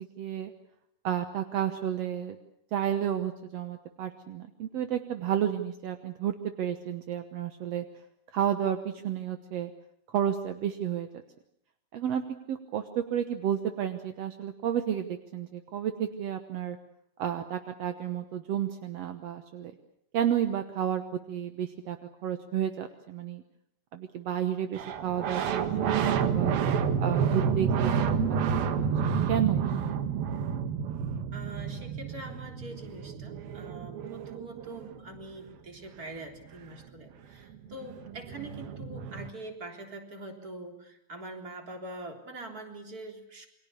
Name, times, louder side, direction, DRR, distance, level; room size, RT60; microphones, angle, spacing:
voice 1, 0.2-0.5 1.0-2.4 2.7-7.9 8.3-9.7 10.1-11.1 11.9-12.2 12.5-16.8 17.2-19.7 20.1-22.0 22.2-23.4 23.9-26.6 27.0-28.1 28.6-29.7, right 9 dB, 65° right, 7 dB, 1.7 m, -31 dB
sound 1, 24.8-35.2 37.2-37.3 37.5-39.3, right 7 dB, 80° right, 3.4 m, -29 dB
voice 2, 31.3-43.5, right 2 dB, 25° right, 3 dB, 3.7 m, -44 dB
28.5 x 23.5 x 6.9 m, 0.75 s
omnidirectional pair, 4.2 m